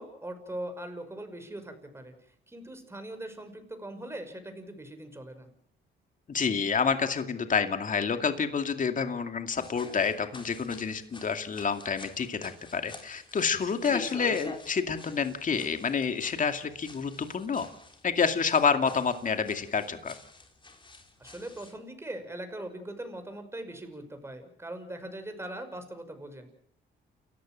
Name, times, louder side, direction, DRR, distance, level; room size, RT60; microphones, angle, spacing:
voice 1, 0.0-2.1 2.5-5.5 21.2-26.5, right 1 dB, 15° right, 7 dB, 5.8 m, -41 dB
voice 2, 6.3-17.7 18.0-20.1, left 6 dB, 40° left, 7 dB, 2.4 m, -28 dB
sound 1, 9.5-21.8, left 3 dB, 25° left, 3.9 m, -47 dB
29.5 x 14.5 x 7.6 m, 0.67 s
cardioid pair, 90°, 20 cm